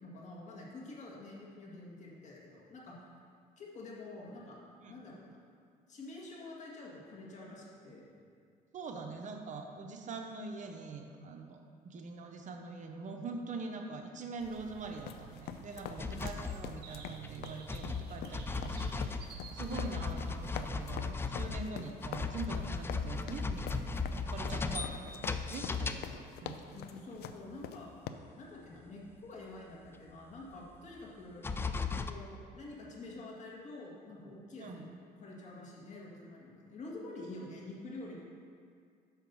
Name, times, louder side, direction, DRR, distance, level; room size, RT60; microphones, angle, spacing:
voice 1, 0.0-3.0 3.6-4.6 4.9-5.3 5.9-8.0 16.0-16.2 26.7-27.9 28.4-31.5 32.1-34.9 35.2-38.2, left 2 dB, 45° left, -4 dB, 2.0 m, -47 dB
voice 2, 8.7-11.6 11.8-26.8 34.6-34.9, right 4 dB, 45° right, 3 dB, 0.8 m, -44 dB
sound 1, 14.4-20.8, right 6 dB, 65° right, 1.0 m, -52 dB
sound 2, 15.0-28.1, left 9 dB, 70° left, 0.5 m, -45 dB
sound 3, 16.0-17.4 17.7-26.5 27.6-27.7 28.2-28.3 29.9-30.0 31.0-31.1 31.4-32.1, left 4 dB, 15° left, 0.3 m, -37 dB
5.8 x 5.8 x 6.8 m, 2.2 s
cardioid pair, 110°, 17 cm